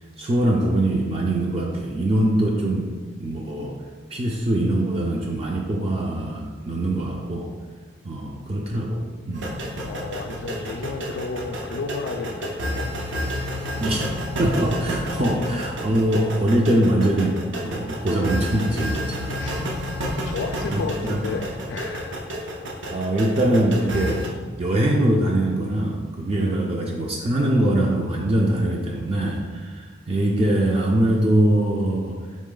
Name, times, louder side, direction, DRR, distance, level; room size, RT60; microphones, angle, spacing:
voice 1, 0.2-2.9 3.2-3.8 4.1-7.5 8.0-9.5 13.8-14.0 14.4-17.4 17.6-19.7 20.7-21.3 22.9-24.2 24.6-32.2, right 1 dB, 30° right, -1 dB, 0.3 m, -23 dB
sound 1, 9.3-24.3, equal, 85° right, 0.7 m, -30 dB
voice 2, 9.8-12.9 13.2-13.5 15.2-15.4 19.4-19.6 20.0-22.4 26.4-26.7, left 4 dB, 75° left, 3 dB, 0.3 m, -33 dB
4.1 x 3.0 x 3.7 m, 1.4 s
head